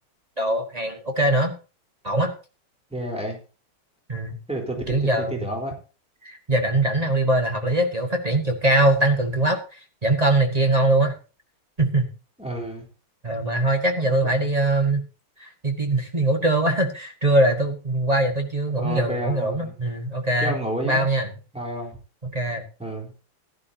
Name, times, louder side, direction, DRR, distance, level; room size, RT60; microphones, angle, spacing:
voice 1, 0.4-1.5 2.0-2.3 4.1-4.4 4.9-5.5 6.2-9.6 10.0-11.1 11.8-12.1 13.2-15.0 15.4-20.6 20.8-21.3 22.3-22.6, right 1 dB, 20° right, 4 dB, 1.4 m, -22 dB
voice 2, 2.9-3.4 4.5-5.7 12.4-12.9 14.1-14.5 18.8-19.7 20.4-21.1 21.5-22.0 22.8-23.1, right 1 dB, 5° right, 0 dB, 3.7 m, -30 dB
15.5 x 11.5 x 2.8 m, 0.33 s
omnidirectional pair, 2.3 m